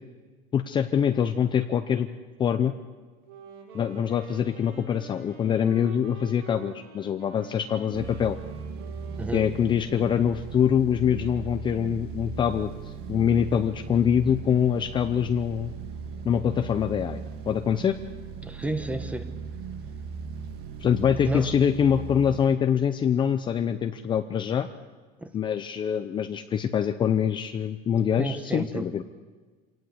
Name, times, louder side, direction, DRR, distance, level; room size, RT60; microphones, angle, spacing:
voice 1, 0.5-2.1 2.4-2.7 3.7-8.4 9.3-15.7 16.2-18.0 20.8-24.7 25.3-29.0, left 8 dB, 20° left, 8 dB, 0.6 m, -24 dB
Wind instrument woodwind instrument, 3.2-10.0, right 2 dB, 70° right, 5.7 m, -46 dB
sound 1, 7.9-22.5, right 6 dB, 50° right, 1.9 m, -38 dB
voice 2, 18.4-19.3 21.2-21.5 25.2-25.3 28.2-28.9, right 2 dB, 5° right, 10 dB, 1.2 m, -31 dB
26.0 x 18.0 x 8.0 m, 1.4 s
cardioid pair, 165°, 21 cm